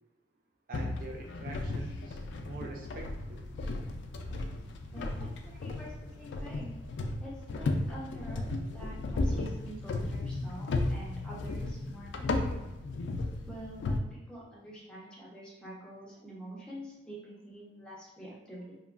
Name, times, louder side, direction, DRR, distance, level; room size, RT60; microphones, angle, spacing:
sound 1, 0.7-14.0, left 2 dB, 75° left, 0.3 m, -35 dB
voice 1, 0.7-2.2 2.4-3.4 6.4-6.5, right 3 dB, 50° right, 0 dB, 0.3 m, -45 dB
voice 2, 4.9-6.7 7.2-12.7 13.5-18.8, right 1 dB, 5° left, -6 dB, 0.7 m, -46 dB
2.9 x 2.3 x 2.4 m, 0.98 s
head